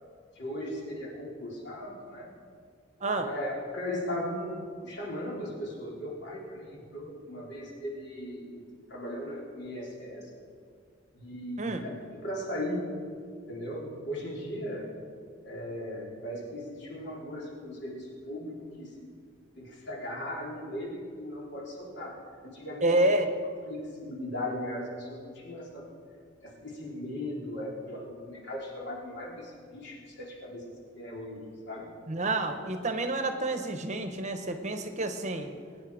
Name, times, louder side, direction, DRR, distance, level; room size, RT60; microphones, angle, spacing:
voice 1, 0.3-2.3 3.0-4.6 4.8-8.6 8.9-10.3 11.1-12.8 13.5-14.9 15.4-18.9 19.6-22.2 22.4-22.9 23.7-25.8 26.4-30.7 30.9-31.9, left 1 dB, 60° left, -4 dB, 4.0 m, -38 dB
voice 2, 22.8-23.3 32.1-35.5, right 2 dB, 35° right, 7 dB, 1.0 m, -28 dB
22.5 x 9.7 x 5.0 m, 2.2 s
head